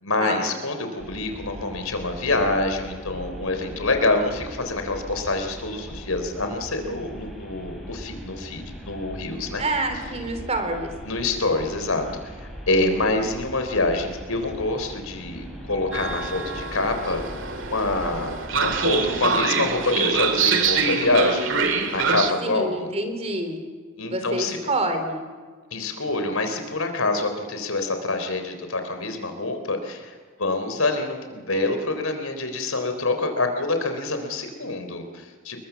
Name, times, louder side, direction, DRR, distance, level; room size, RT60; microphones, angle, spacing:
voice 1, 0.0-9.6 11.0-17.3 17.7-21.5 21.9-22.9 24.0-24.6 25.7-35.6, left 2 dB, 85° left, 6 dB, 4.0 m, -26 dB
sound 1, 1.0-19.2, equal, ahead, 5.7 m, -40 dB
voice 2, 9.6-10.9 22.4-23.6 24.0-25.2, right 2 dB, 30° right, 7 dB, 3.7 m, -27 dB
Train, 15.9-22.3, right 5 dB, 65° right, 2.4 m, -25 dB
28.5 x 22.0 x 7.2 m, 1.5 s
head